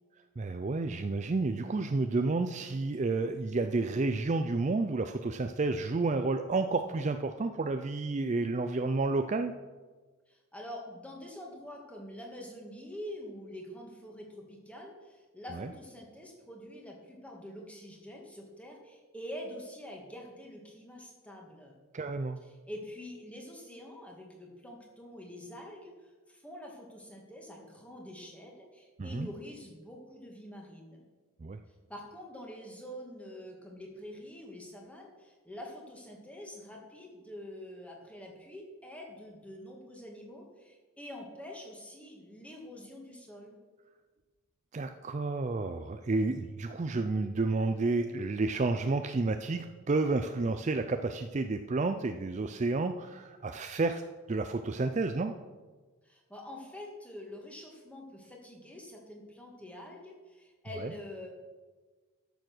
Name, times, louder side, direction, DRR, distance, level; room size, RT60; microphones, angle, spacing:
voice 1, 0.4-9.5 15.5-15.7 21.9-22.4 29.0-29.3 31.4-31.6 44.7-54.0 54.3-55.3 60.8-60.9, right 3 dB, 30° right, 8 dB, 0.4 m, -30 dB
voice 2, 10.3-21.8 22.5-31.0 31.9-43.6 56.0-61.3, left 1 dB, 5° left, 0 dB, 1.9 m, -46 dB
12.5 x 7.1 x 6.1 m, 1.3 s
head